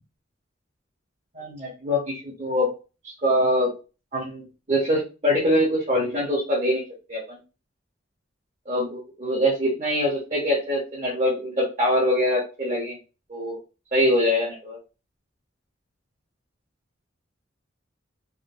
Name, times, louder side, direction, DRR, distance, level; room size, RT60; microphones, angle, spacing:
voice 1, 1.3-2.7 3.0-3.7 4.1-6.8 7.1-7.4 8.6-13.0 13.3-13.6 13.9-14.8, equal, 35° right, -4 dB, 0.9 m, -24 dB
3.6 x 2.2 x 2.5 m, 0.32 s
head